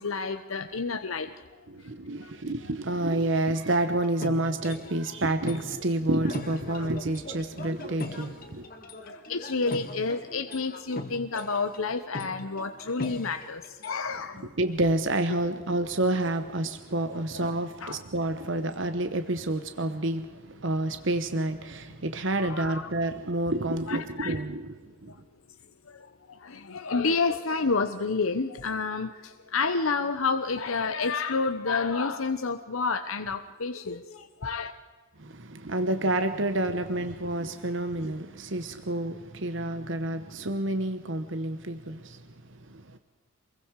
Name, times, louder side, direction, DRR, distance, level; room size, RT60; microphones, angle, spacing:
voice 1, 0.0-1.6 2.2-2.3 9.0-14.5 17.3-17.5 17.8-18.0 22.4-22.9 23.9-24.3 25.1-25.2 25.9-34.7, left 4 dB, 80° left, 1.0 m, -30 dB
voice 2, 1.7-8.7 14.3-25.1 35.2-43.0, right 1 dB, 60° right, 1.1 m, -29 dB
sound 1, 4.0-14.0, left 2 dB, 45° left, 2.3 m, -41 dB
27.5 x 22.0 x 4.8 m
head